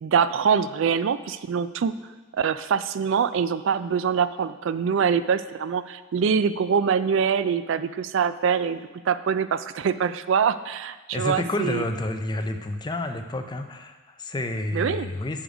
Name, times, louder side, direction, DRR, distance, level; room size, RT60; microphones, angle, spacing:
voice 1, 0.0-1.9 2.3-11.8 14.7-15.1, right 6 dB, 65° right, 14 dB, 0.3 m, -24 dB
voice 2, 11.1-15.4, left 2 dB, 20° left, 7 dB, 0.4 m, -29 dB
7.1 x 6.3 x 5.0 m, 1.3 s
head